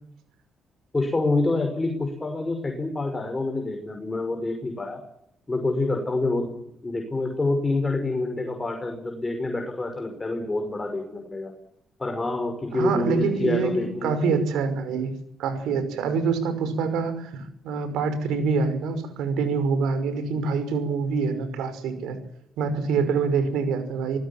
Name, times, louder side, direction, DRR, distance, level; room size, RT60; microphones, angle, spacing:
voice 1, 0.9-5.0 5.5-6.5 6.8-11.5 12.0-14.4, left 2 dB, 20° left, 4 dB, 6.0 m, -27 dB
voice 2, 12.7-22.2 22.6-24.2, right 5 dB, 90° right, 11 dB, 5.6 m, -26 dB
27.5 x 19.5 x 7.4 m, 0.75 s
cardioid pair, 90°, 0 cm